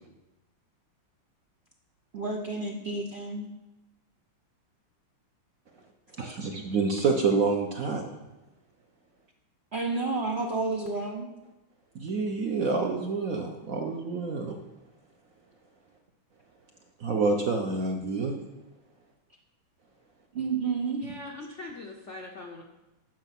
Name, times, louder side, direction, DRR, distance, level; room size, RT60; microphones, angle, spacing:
voice 1, 2.1-3.5 9.7-11.3 20.3-21.0, right 3 dB, 90° right, 0 dB, 0.5 m, -30 dB
voice 2, 6.2-8.0 11.9-14.6 17.0-18.3, right 4 dB, 60° right, 3 dB, 0.9 m, -27 dB
voice 3, 21.0-22.6, left 2 dB, 65° left, 1 dB, 0.7 m, -41 dB
9.2 x 7.2 x 5.9 m, 1.0 s
omnidirectional pair, 2.4 m